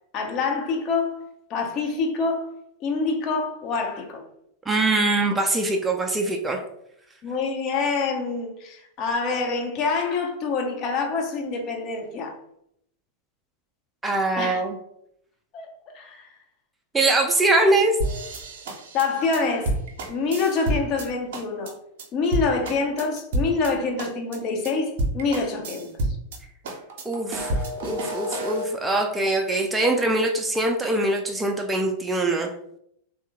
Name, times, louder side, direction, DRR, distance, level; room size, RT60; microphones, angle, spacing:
voice 1, 0.1-1.2 1.5-2.5 2.8-4.2 7.2-12.4 14.4-14.6 15.5-16.3 18.9-19.8 20.1-21.7 22.1-26.2, left 4 dB, 35° left, 0.6 m, -26 dB
voice 2, 4.7-6.6 14.0-14.8 16.9-18.0 27.1-32.5, right 2 dB, 10° right, 0.4 m, -23 dB
sound 1, 18.0-21.1 21.3-21.7 22.0-22.1 22.3-23.7 24.0-24.4 24.6-24.7 25.0-26.4 26.6-28.7, right 1 dB, 55° right, 0.6 m, -29 dB
3.4 x 2.3 x 2.9 m
figure-of-eight pair, 90°, 0 cm